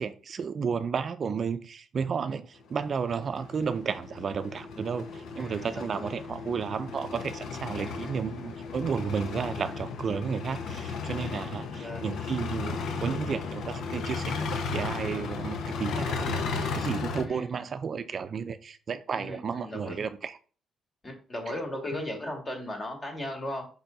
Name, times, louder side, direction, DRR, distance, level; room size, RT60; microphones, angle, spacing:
voice 1, 0.0-20.4 21.5-21.6 21.9-22.0, right 6 dB, 50° right, 0.5 m, -32 dB
sound 1, 2.7-17.2, left 4 dB, 75° left, 0.9 m, -35 dB
voice 2, 5.4-6.1 7.7-8.2 11.2-12.0 17.2-17.4 19.1-20.0 21.0-23.7, left 1 dB, 30° left, 2.6 m, -37 dB
5.5 x 4.4 x 5.2 m
cardioid pair, 90°, 0 cm